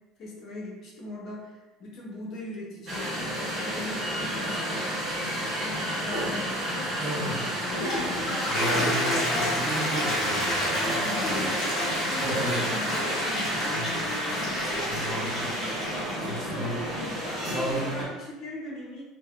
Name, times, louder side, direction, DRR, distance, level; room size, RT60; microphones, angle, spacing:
voice 1, 0.2-5.3 5.6-8.4 11.0-13.6 16.2-19.0, left 1 dB, 40° left, -3 dB, 0.6 m, -40 dB
sound 1, 2.9-18.0, equal, 45° right, 1.0 m, -31 dB
voice 2, 7.0-7.4 8.5-11.2 12.2-12.8 13.7-13.9 14.8-15.5 16.2-16.8 17.5-18.1, right 1 dB, 25° right, -6 dB, 0.8 m, -33 dB
Toilet flush, 7.7-17.8, left 1 dB, 20° left, 1.4 m, -31 dB
3.1 x 2.0 x 2.4 m, 1.1 s
cardioid pair, 160°, 0 cm